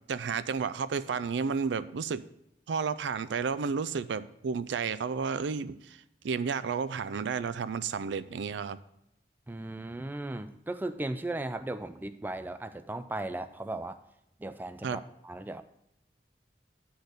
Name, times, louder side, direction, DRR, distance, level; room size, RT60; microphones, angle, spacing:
voice 1, 0.1-2.2 2.7-6.0 6.2-8.8 14.8-15.0, right 5 dB, 85° right, 15 dB, 0.4 m, -32 dB
voice 2, 9.5-14.0 14.4-15.6, right 2 dB, 10° right, 10 dB, 0.3 m, -37 dB
10.0 x 4.0 x 6.5 m, 0.80 s
head